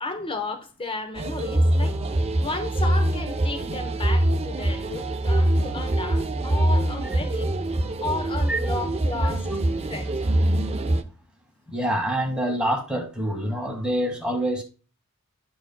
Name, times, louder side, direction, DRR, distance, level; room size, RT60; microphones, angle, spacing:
voice 1, 0.0-2.0 2.4-9.5 9.8-10.3, left 3 dB, 25° left, 0.9 m, -33 dB
sound 1, 1.2-11.0, right 1 dB, 30° right, 0.6 m, -24 dB
voice 2, 11.7-14.6, right 1 dB, 5° right, 1.8 m, -26 dB
12.0 x 4.9 x 2.2 m
head